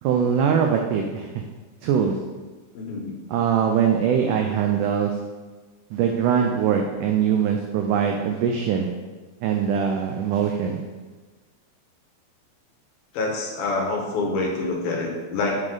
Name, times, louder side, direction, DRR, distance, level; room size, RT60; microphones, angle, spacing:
voice 1, 0.0-1.3 1.8-2.2 3.3-5.2 5.9-8.9 9.4-10.8, right 7 dB, 90° right, 3 dB, 1.8 m, -22 dB
voice 2, 2.7-3.1 13.1-15.6, left 3 dB, 80° left, 0 dB, 3.0 m, -26 dB
6.8 x 6.2 x 3.8 m, 1.3 s
omnidirectional pair, 4.3 m